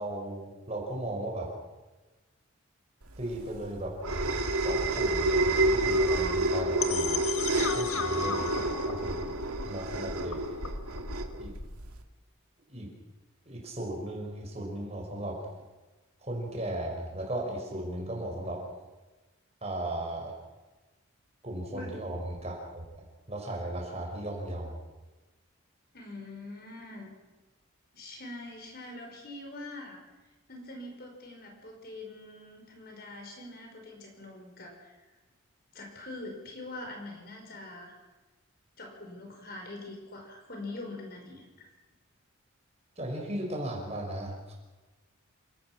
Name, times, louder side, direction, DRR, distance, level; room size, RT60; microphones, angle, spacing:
voice 1, 0.0-1.5 3.2-3.9 4.6-7.2 7.7-9.2 9.6-10.4 11.4-11.5 12.7-12.9 13.5-15.4 16.2-18.6 19.6-20.3 21.4-22.8 23.3-24.8 43.0-44.5, right 1 dB, 30° right, 0 dB, 5.6 m, -36 dB
sound 1, 3.2-12.0, right 2 dB, 90° right, 2.2 m, -29 dB
sound 2, 6.8-11.8, left 6 dB, 75° left, 1.6 m, -36 dB
voice 2, 21.7-22.0 25.9-27.1 27.9-30.0 30.5-35.1 35.7-38.0 38.8-41.7, left 2 dB, 45° left, 2 dB, 5.4 m, -44 dB
28.0 x 18.0 x 6.1 m, 1.2 s
head